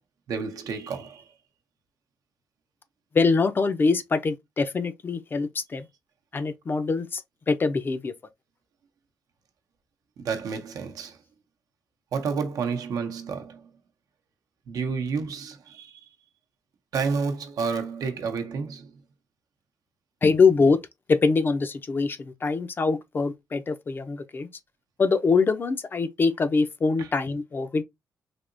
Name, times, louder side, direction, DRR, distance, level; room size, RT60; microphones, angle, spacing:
voice 1, 0.3-1.2 10.2-11.2 12.1-13.7 14.7-16.0 16.9-18.9 27.0-27.1, right 5 dB, 70° right, 0.7 m, -30 dB
voice 2, 3.1-5.8 6.3-7.2 7.5-8.1 20.2-20.8 21.1-24.5 25.0-27.8, left 4 dB, 35° left, 0.5 m, -23 dB
3.4 x 2.8 x 2.5 m
cardioid pair, 115°, 6 cm